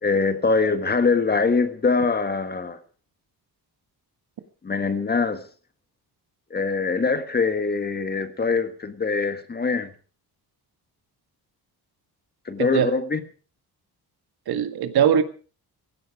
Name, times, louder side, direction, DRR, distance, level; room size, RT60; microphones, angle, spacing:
voice 1, 0.0-2.8 4.6-5.4 6.5-9.9 12.4-13.2, left 4 dB, 25° left, 1.6 m, -23 dB
voice 2, 12.6-12.9 14.5-15.2, right 9 dB, 70° right, 1.8 m, -21 dB
17.0 x 16.0 x 4.9 m
wide cardioid pair, 155°, 39 cm